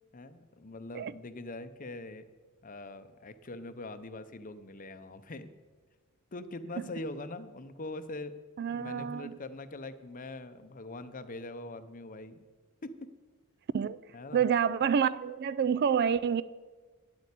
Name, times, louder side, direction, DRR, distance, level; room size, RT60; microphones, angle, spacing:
voice 1, 0.1-2.3 2.6-5.5 6.3-8.3 8.7-12.5 12.8-13.1 14.1-14.4, left 2 dB, 35° left, 0.7 m, -42 dB
voice 2, 8.6-9.4 13.7-14.0 14.3-16.4, right 7 dB, 45° right, 0.3 m, -28 dB
9.5 x 8.6 x 8.3 m
head